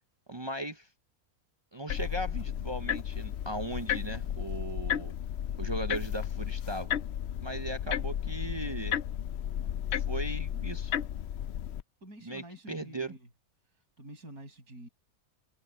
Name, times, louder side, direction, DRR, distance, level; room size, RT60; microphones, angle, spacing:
voice 1, 0.3-0.9 1.7-5.1 5.6-7.0 7.4-9.0 9.9-11.0 12.2-13.1, right 2 dB, 40° right, 0.4 m, -38 dB
sound 1, 1.9-11.8, left 10 dB, 70° left, 0.6 m, -33 dB
voice 2, 12.0-13.3 13.7-14.9, right 1 dB, 75° right, 7.3 m, -48 dB
omnidirectional pair, 1.6 m